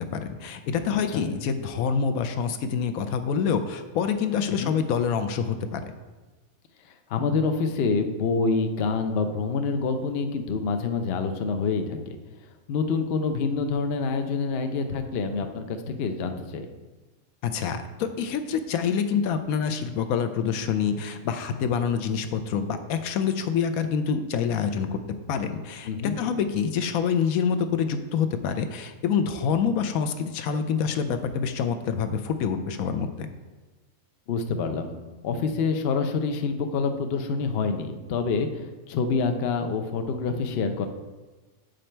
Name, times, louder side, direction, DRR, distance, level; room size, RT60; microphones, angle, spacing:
voice 1, 0.1-5.9 17.4-25.0 25.3-33.3, left 6 dB, 80° left, 9 dB, 1.1 m, -26 dB
voice 2, 7.1-12.2 12.7-16.7 25.9-26.1 34.3-34.9 35.2-40.9, left 4 dB, 55° left, 6 dB, 0.8 m, -27 dB
7.8 x 5.2 x 4.4 m, 1.2 s
omnidirectional pair, 1.5 m